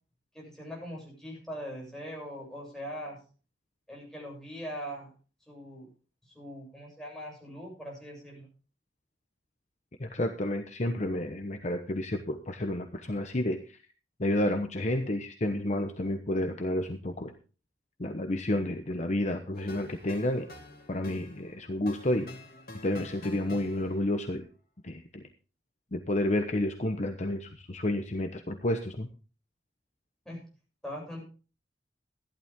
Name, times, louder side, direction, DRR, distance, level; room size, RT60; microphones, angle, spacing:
voice 1, 0.3-3.2 3.9-5.1 5.5-5.9 6.3-8.5 30.3-30.5 30.8-31.2, equal, 5° left, -2 dB, 7.3 m, -41 dB
voice 2, 10.0-13.8 14.2-17.3 18.0-20.5 20.9-22.3 22.8-24.4 24.8-25.2 25.9-29.1, left 1 dB, 40° left, 6 dB, 1.0 m, -30 dB
sound 1, 19.5-24.2, left 2 dB, 60° left, 2.9 m, -47 dB
14.5 x 11.5 x 3.7 m, 0.36 s
head